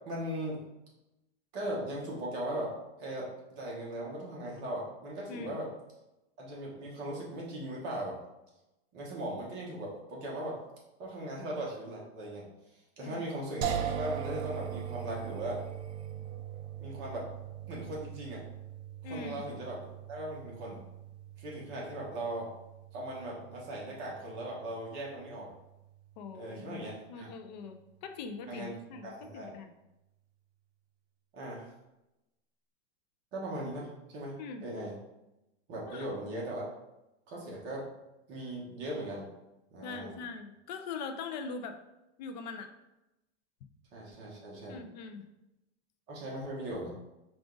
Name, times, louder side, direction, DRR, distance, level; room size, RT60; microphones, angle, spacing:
voice 1, 0.1-0.6 1.5-5.7 6.4-8.2 8.9-10.6 11.0-12.4 13.0-15.6 16.8-17.3 17.7-18.4 19.0-20.8 21.4-22.5 22.9-25.5 26.3-27.3 28.5-28.7 29.0-29.6 31.3-31.7 33.3-34.4 34.6-34.9 35.7-36.6 37.3-37.8 38.3-39.3 39.7-40.2 43.9-44.8 46.1-46.9, right 1 dB, 30° right, -4 dB, 1.1 m, -38 dB
sound 1, 13.6-26.7, right 8 dB, 75° right, 0.7 m, -41 dB
voice 2, 19.0-19.4 26.2-26.8 27.1-29.7 34.4-34.7 35.9-36.1 39.8-41.8 42.2-42.7 44.7-45.3, left 4 dB, 40° left, 7 dB, 0.4 m, -42 dB
4.9 x 2.4 x 3.8 m, 0.95 s
supercardioid pair, 160°, 34 cm